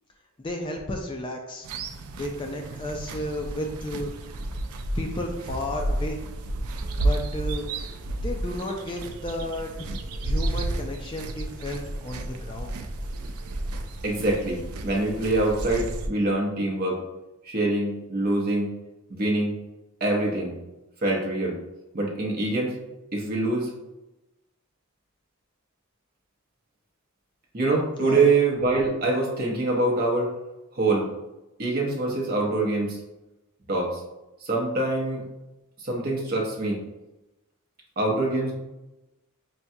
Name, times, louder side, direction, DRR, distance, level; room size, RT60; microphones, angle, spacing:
voice 1, 0.4-1.7 2.1-4.1 5.0-6.2 7.0-7.7 8.2-12.7 28.0-28.3, left 1 dB, 20° left, 2 dB, 0.3 m, -33 dB
sound 1, 1.6-16.1, right 1 dB, 80° right, 0.4 m, -32 dB
voice 2, 14.0-17.0 17.4-18.7 19.1-19.5 20.0-20.5 21.0-21.6 21.9-22.7 23.1-23.7 27.5-30.3 30.7-31.1 31.6-33.0 33.7-34.0 34.4-35.2 35.8-36.8 38.0-38.5, right 2 dB, 45° right, -1 dB, 0.8 m, -24 dB
5.7 x 2.3 x 2.6 m, 1.0 s
head